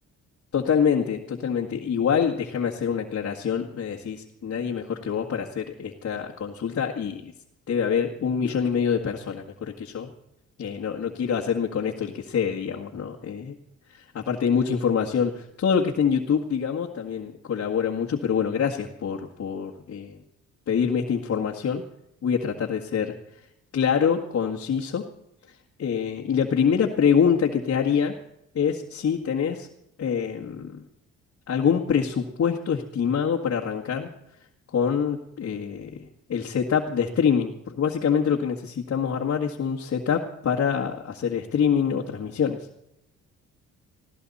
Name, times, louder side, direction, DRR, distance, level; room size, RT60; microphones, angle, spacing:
voice 1, 0.5-7.3 7.7-10.1 10.6-13.5 13.9-20.2 20.7-21.8 22.2-23.1 23.7-25.0 25.8-28.1 28.6-29.7 30.0-30.8 31.5-34.1 34.7-42.6, left 7 dB, 55° left, -1 dB, 1.8 m, -25 dB
19.5 x 16.0 x 4.2 m, 0.81 s
cardioid pair, 90°, 30 cm